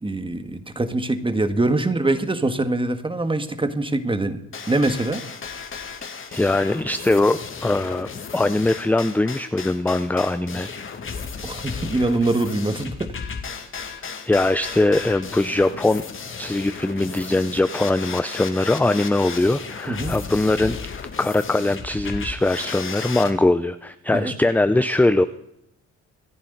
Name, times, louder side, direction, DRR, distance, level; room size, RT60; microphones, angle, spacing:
voice 1, 0.0-4.4 4.7-5.2 11.4-13.1 19.9-20.1 24.1-24.3, right 2 dB, 15° right, 9 dB, 1.6 m, -23 dB
sound 1, 4.5-23.3, left 5 dB, 45° left, 2.1 m, -35 dB
voice 2, 6.3-10.7 14.3-16.0 16.4-20.8 21.2-25.2, left 2 dB, 5° left, 12 dB, 0.5 m, -21 dB
26.0 x 10.5 x 4.0 m, 0.81 s
cardioid pair, 90°, 30 cm